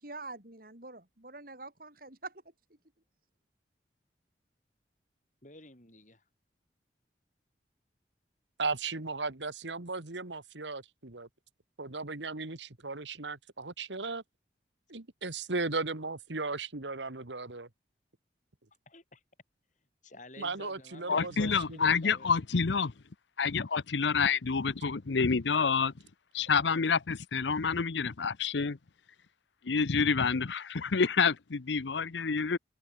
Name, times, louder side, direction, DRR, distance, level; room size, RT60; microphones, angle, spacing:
voice 1, 0.0-2.4, right 3 dB, 55° right, 5.4 m, -45 dB
voice 2, 5.4-6.2 18.9-19.2 20.0-22.3, left 2 dB, 45° left, 6.3 m, -51 dB
voice 3, 8.6-11.3 11.8-14.2 14.9-17.7 20.4-22.0, right 3 dB, 85° right, 2.0 m, -36 dB
voice 4, 21.1-22.9 23.4-25.9 26.3-28.8 29.6-32.6, left 5 dB, 85° left, 0.8 m, -28 dB
head